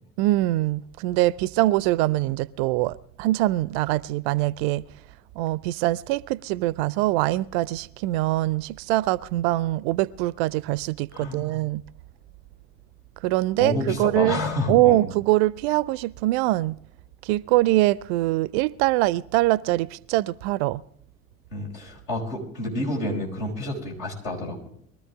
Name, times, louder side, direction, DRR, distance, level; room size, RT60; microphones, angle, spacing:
voice 1, 0.2-4.8 5.4-11.8 13.2-14.4 14.7-16.8 17.2-20.8, right 17 dB, 50° right, 0.5 m, -23 dB
voice 2, 11.1-11.5 13.6-15.0 21.5-24.7, left 2 dB, 65° left, 5.1 m, -29 dB
22.0 x 13.5 x 3.5 m
figure-of-eight pair, 60°, 39 cm